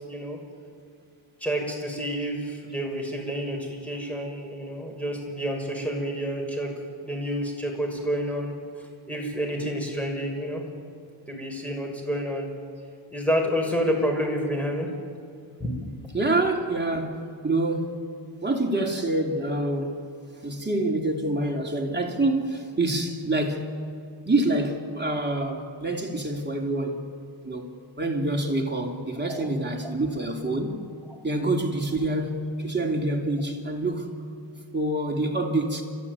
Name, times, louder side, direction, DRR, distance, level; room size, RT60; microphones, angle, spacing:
voice 1, 0.1-0.4 1.4-6.7 7.0-10.6 11.3-12.5 13.1-14.9 15.6-15.7 29.3-29.4, equal, 5° left, 6.0 m, -29 dB
voice 2, 16.1-18.0 18.4-20.0 20.4-23.8 24.2-27.0 27.4-27.7 28.0-30.8 31.2-34.2 34.7-35.8, right 2 dB, 20° right, 3.3 m, -26 dB
30.0 x 14.0 x 9.7 m
wide cardioid pair, 75°, 48 cm